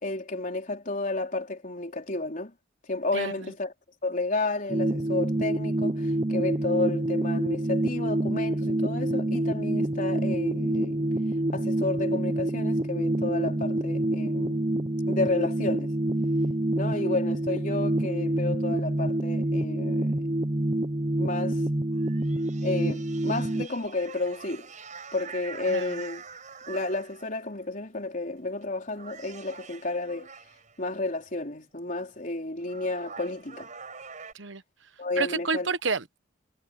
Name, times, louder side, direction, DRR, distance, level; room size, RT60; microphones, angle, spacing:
voice 1, 0.0-2.5 2.9-3.7 4.0-11.1 11.5-14.7 15.1-15.9 16.7-20.3 21.2-21.6 22.6-24.7 25.1-26.2 26.7-30.3 30.8-33.7 35.0-35.7, left 2 dB, 45° left, 3.9 m, -31 dB
voice 2, 3.1-3.5 25.7-26.0 34.3-34.6 35.2-36.2, right 4 dB, 85° right, 1.2 m, -30 dB
sound 1, 4.7-23.7, right 1 dB, 25° right, 0.8 m, -27 dB
sound 2, 21.9-27.5 28.4-28.6 28.9-30.8 32.2-32.3 32.6-34.3, right 6 dB, 40° right, 6.3 m, -45 dB
head